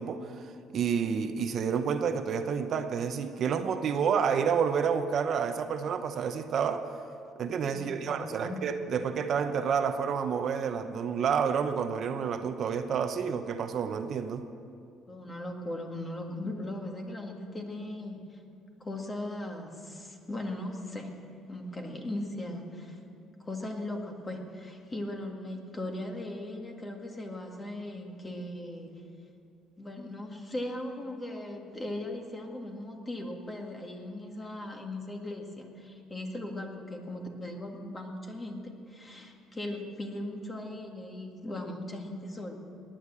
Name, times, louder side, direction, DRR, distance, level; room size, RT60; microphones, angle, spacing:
voice 1, 0.0-6.9 7.4-14.4, right 6 dB, 50° right, 8 dB, 0.7 m, -29 dB
voice 2, 7.7-8.6 15.1-18.4 18.8-21.2 21.5-23.0 23.4-29.0 29.8-42.6, left 1 dB, 20° left, 2 dB, 1.9 m, -38 dB
18.5 x 10.0 x 7.3 m, 2.5 s
cardioid pair, 125°, 0 cm